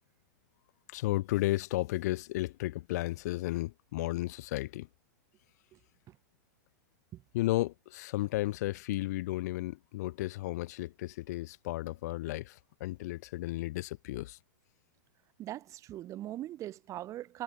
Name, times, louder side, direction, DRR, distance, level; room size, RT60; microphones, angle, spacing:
voice 1, 0.9-4.9 7.3-14.4, left 17 dB, 60° left, 1.9 m, -33 dB
voice 2, 15.4-17.4, right 13 dB, 30° right, 7.5 m, -40 dB
hypercardioid pair, 130°, 10 cm